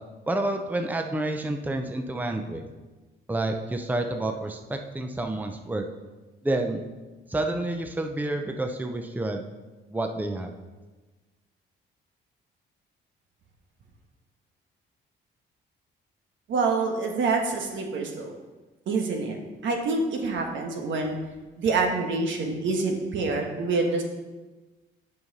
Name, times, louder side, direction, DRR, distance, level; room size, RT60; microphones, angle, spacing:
voice 1, 0.3-2.6 3.3-5.9 6.4-6.8 7.3-9.4 9.9-10.5, right 2 dB, 10° right, 5 dB, 0.7 m, -29 dB
voice 2, 16.5-18.3 18.9-19.4 19.6-21.2 21.6-24.0, right 3 dB, 75° right, 2 dB, 1.3 m, -26 dB
6.9 x 5.6 x 5.3 m, 1.2 s
cardioid pair, 90°, 20 cm